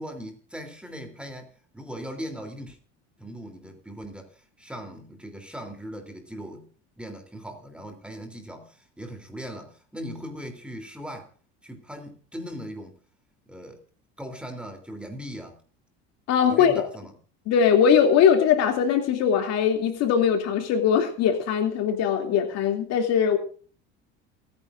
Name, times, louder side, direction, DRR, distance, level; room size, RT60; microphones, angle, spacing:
voice 1, 0.0-1.5 1.7-2.8 3.2-6.7 7.0-11.3 11.6-13.0 13.5-13.8 14.2-15.6 16.5-17.1, equal, 5° right, 5 dB, 3.3 m, -39 dB
voice 2, 16.3-16.9 17.5-23.4, left 7 dB, 60° left, 4 dB, 2.8 m, -21 dB
28.0 x 9.6 x 2.6 m, 0.41 s
cardioid pair, 120°, 29 cm